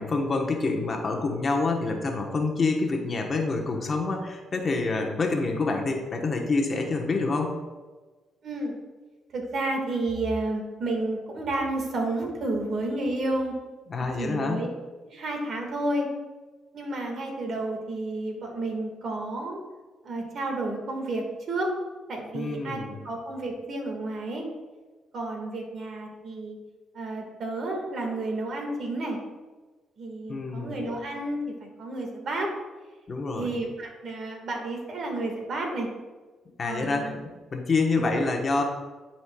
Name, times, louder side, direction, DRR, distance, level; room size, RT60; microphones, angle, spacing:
voice 1, 0.0-7.5 13.9-14.6 22.3-23.0 30.3-30.7 33.1-33.5 36.6-38.6, left 3 dB, 40° left, 2 dB, 1.0 m, -27 dB
voice 2, 8.4-8.8 9.3-13.5 14.2-14.7 15.0-16.1 16.7-19.6 20.0-21.7 22.1-24.5 25.1-26.6 26.9-29.2 30.0-32.5 33.3-35.9 36.6-37.2 37.9-38.2, right 2 dB, 60° right, 1 dB, 1.6 m, -31 dB
11.5 x 4.3 x 2.3 m, 1.3 s
cardioid pair, 90°, 0 cm